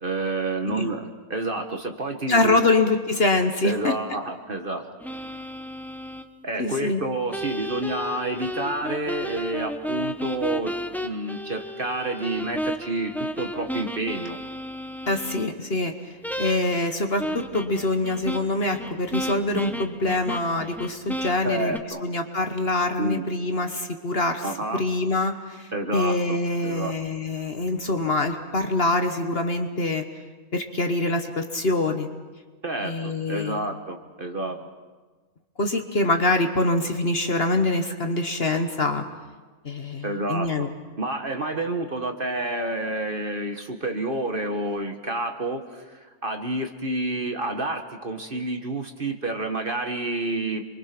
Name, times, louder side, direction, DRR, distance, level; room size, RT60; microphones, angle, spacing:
voice 1, 0.0-2.7 3.6-5.2 6.4-14.4 21.4-22.0 23.0-23.2 24.4-24.8 25.7-26.9 32.6-34.7 40.0-40.7 41.0-50.6, right 2 dB, 35° right, 5 dB, 1.6 m, -29 dB
voice 2, 2.3-3.9 6.6-7.0 15.1-15.9 16.4-30.0 30.5-32.1 32.8-33.7 35.6-39.0 39.6-40.7, left 2 dB, 40° left, 5 dB, 1.4 m, -25 dB
sound 1, 5.0-6.3 7.3-15.5 16.2-16.9 17.2-21.8, equal, ahead, 0.5 m, -33 dB
28.0 x 23.5 x 6.0 m, 1.3 s
omnidirectional pair, 1.7 m